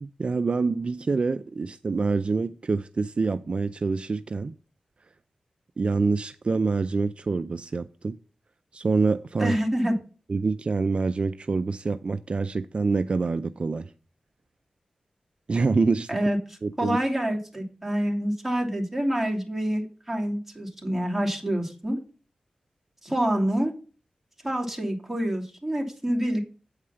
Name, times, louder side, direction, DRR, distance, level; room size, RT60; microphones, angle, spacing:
voice 1, 0.0-4.5 5.8-8.2 8.7-9.6 10.3-13.9 15.5-16.2 16.6-17.0, right 4 dB, 50° right, 0.4 m, -26 dB
voice 2, 9.4-9.9 16.1-16.4 16.8-22.0 23.0-23.7 24.4-26.4, equal, 10° right, 2.7 m, -27 dB
8.7 x 4.8 x 5.6 m
cardioid pair, 55°, 2 cm